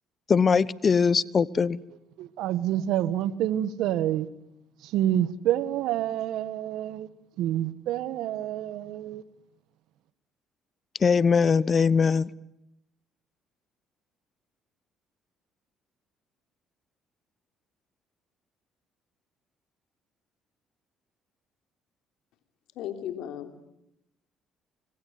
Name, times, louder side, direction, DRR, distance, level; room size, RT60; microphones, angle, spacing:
voice 1, 0.3-1.8 11.0-12.3, left 5 dB, 40° left, 1.0 m, -21 dB
voice 2, 2.2-4.3 4.8-7.1 7.4-9.2, right 12 dB, 80° right, 1.5 m, -28 dB
voice 3, 22.8-23.7, left 10 dB, 80° left, 3.4 m, -36 dB
25.0 x 23.5 x 9.5 m
supercardioid pair, 75°, 0 cm